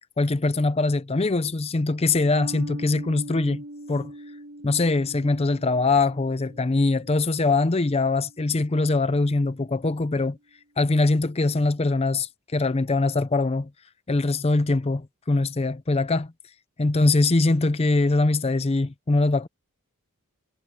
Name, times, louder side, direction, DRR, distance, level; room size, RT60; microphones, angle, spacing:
voice 1, 0.2-4.1 4.6-10.4 10.8-13.7 14.1-16.3 16.8-19.5, left 3 dB, 25° left, 0.5 m, -22 dB
sound 1, 2.4-9.1, right 1 dB, 55° right, 5.0 m, -42 dB
head